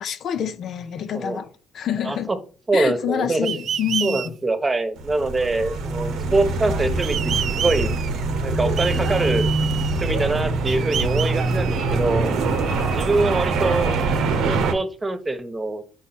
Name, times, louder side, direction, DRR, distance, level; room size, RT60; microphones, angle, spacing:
voice 1, 0.0-2.3 2.7-4.3, left 9 dB, 70° left, 0.7 m, -27 dB
voice 2, 2.0-2.4 2.7-3.5 4.0-7.9 8.4-9.5 10.0-12.3 12.9-13.9 14.4-15.8, right 2 dB, 25° right, 1.1 m, -24 dB
sound 1, 3.4-4.3 7.0-8.2 8.8-10.2 10.7-12.2, right 9 dB, 65° right, 0.3 m, -30 dB
sound 2, 5.0-14.7, right 3 dB, 85° right, 0.9 m, -24 dB
4.8 x 4.2 x 5.8 m
cardioid pair, 90°, 0 cm